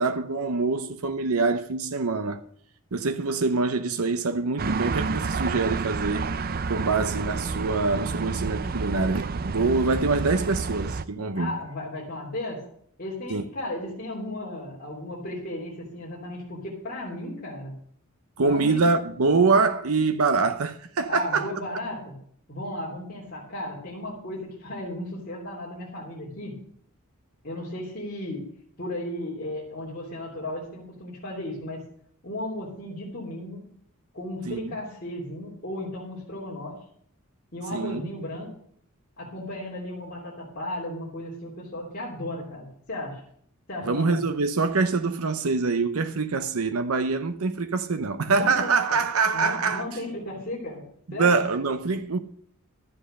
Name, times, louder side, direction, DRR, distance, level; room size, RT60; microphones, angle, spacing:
voice 1, 0.0-2.4 2.9-6.3 6.7-11.5 13.3-13.4 18.4-21.5 34.5-34.8 37.7-38.1 43.8-49.8 51.1-52.2, right 4 dB, 80° right, 0.8 m, -25 dB
sound 1, 4.6-11.0, right 4 dB, 40° right, 0.5 m, -29 dB
voice 2, 11.3-12.6 13.0-17.7 18.4-18.8 21.1-22.1 22.5-26.5 27.4-28.4 28.8-31.8 32.2-33.6 34.1-36.8 37.5-38.5 39.2-43.2 43.7-44.2 48.3-49.0 49.3-51.4, left 1 dB, 40° left, 3.0 m, -35 dB
12.5 x 7.7 x 6.8 m
head